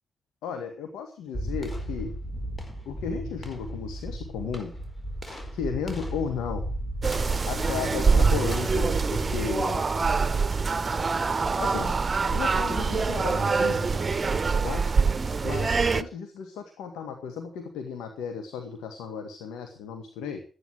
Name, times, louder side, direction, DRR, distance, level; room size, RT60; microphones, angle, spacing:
voice 1, 0.4-2.1 2.9-4.7 5.5-6.6 7.5-9.8 11.6-11.9 12.3-14.0 14.5-14.9 15.4-20.4, left 6 dB, 75° left, 5 dB, 1.8 m, -34 dB
sound 1, 1.3-10.5, equal, 30° left, 4.7 m, -35 dB
sound 2, 7.0-16.0, right 4 dB, 40° right, 1.1 m, -25 dB
13.5 x 10.0 x 7.9 m, 0.42 s
hypercardioid pair, 40°, 0 cm